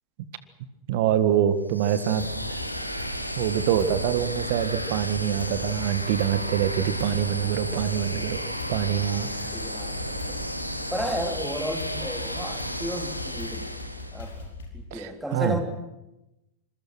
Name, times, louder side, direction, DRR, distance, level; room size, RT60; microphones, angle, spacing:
voice 1, 0.9-2.6 3.4-9.3 14.9-15.6, right 10 dB, 50° right, 12 dB, 1.7 m, -25 dB
sound 1, 1.7-14.4, equal, 90° left, 1.9 m, -33 dB
sound 2, 2.2-14.9, left 3 dB, 65° left, 5.1 m, -40 dB
voice 2, 8.9-10.5 10.9-13.7 14.1-14.3 14.7-15.6, equal, ahead, 5 dB, 3.4 m, -33 dB
27.0 x 22.0 x 6.2 m, 0.91 s
figure-of-eight pair, 90°, 0 cm